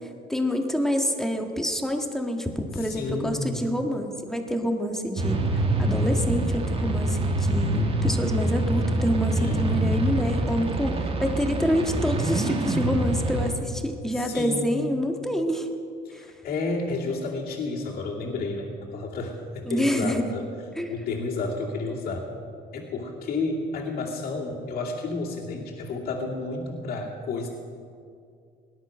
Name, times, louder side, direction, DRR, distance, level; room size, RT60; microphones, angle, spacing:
voice 1, 0.3-5.5 5.8-15.7 16.1-16.3 19.6-20.3 20.7-20.9, equal, ahead, 3 dB, 1.7 m, -27 dB
voice 2, 2.8-3.6 9.4-9.9 14.1-14.9 16.0-20.4 20.9-22.3 22.7-27.5, left 3 dB, 60° left, -5 dB, 2.6 m, -31 dB
sound 1, 5.2-13.5, right 1 dB, 35° right, 1.9 m, -25 dB
18.5 x 11.5 x 6.3 m, 2.3 s
cardioid pair, 110°, 17 cm